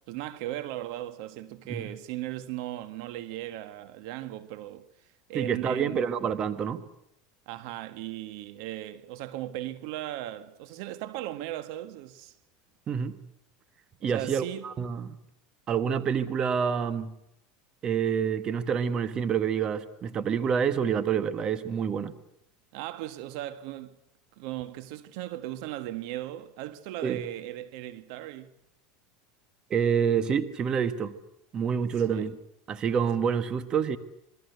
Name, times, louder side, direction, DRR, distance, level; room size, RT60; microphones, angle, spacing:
voice 1, 0.1-4.9 5.3-6.0 7.5-12.3 14.0-14.6 22.7-23.9 24.4-28.5 32.1-32.3, right 14 dB, 70° right, 1.6 m, -37 dB
voice 2, 5.3-6.8 12.9-13.2 14.0-15.1 15.7-17.1 17.8-22.1 27.0-27.2 29.7-31.2 31.5-32.4 32.7-34.0, right 7 dB, 30° right, 1.6 m, -27 dB
27.0 x 21.5 x 8.1 m
supercardioid pair, 130°, 3 cm